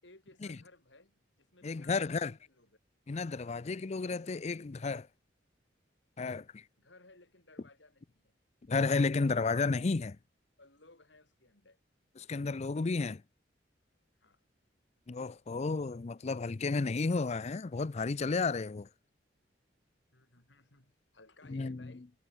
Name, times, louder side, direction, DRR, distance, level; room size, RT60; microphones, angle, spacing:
voice 1, 0.0-2.8 6.8-8.4 10.6-11.8 14.2-14.4 18.6-18.9 20.1-22.1, left 2 dB, 70° left, 6.1 m, -60 dB
voice 2, 1.6-2.3 3.1-5.1 6.2-6.6 8.7-10.2 12.2-13.2 15.1-18.9 21.5-21.9, left 4 dB, 35° left, 0.5 m, -32 dB
head